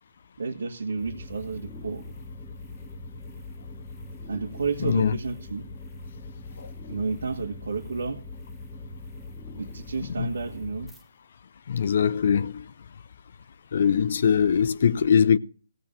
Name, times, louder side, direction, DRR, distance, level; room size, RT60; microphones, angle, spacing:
voice 1, 0.4-2.0 4.3-5.7 6.9-8.2 9.6-10.9, right 4 dB, 80° right, 1.9 m, -31 dB
sound 1, 1.0-11.0, left 2 dB, ahead, 1.7 m, -41 dB
voice 2, 4.8-5.1 6.6-6.7 10.0-10.3 11.7-12.7 13.7-15.4, left 7 dB, 55° left, 0.6 m, -22 dB
16.0 x 7.0 x 7.4 m
hypercardioid pair, 155°, 0 cm